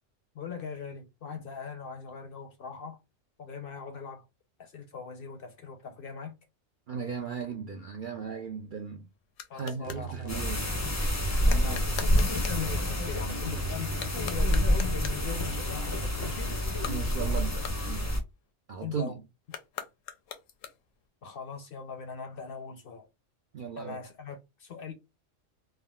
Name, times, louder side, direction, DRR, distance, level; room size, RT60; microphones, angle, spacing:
voice 1, 0.3-3.0 3.4-4.2 4.6-6.3 9.5-10.5 11.4-16.6 18.8-19.2 21.2-23.1 23.8-24.9, left 6 dB, 60° left, 0.7 m, -40 dB
voice 2, 6.9-9.0 9.5-10.7 16.9-18.0 18.7-19.1 23.5-24.0, right 6 dB, 65° right, 0.5 m, -36 dB
sound 1, 8.3-10.1 11.4-12.7 13.9-15.3 16.7-18.5 19.4-21.1, left 8 dB, 85° left, 1.0 m, -43 dB
sound 2, 9.8-17.5, right 2 dB, 20° right, 0.6 m, -41 dB
sound 3, 10.3-18.2, equal, 20° left, 0.4 m, -28 dB
3.5 x 2.2 x 2.2 m
omnidirectional pair, 1.3 m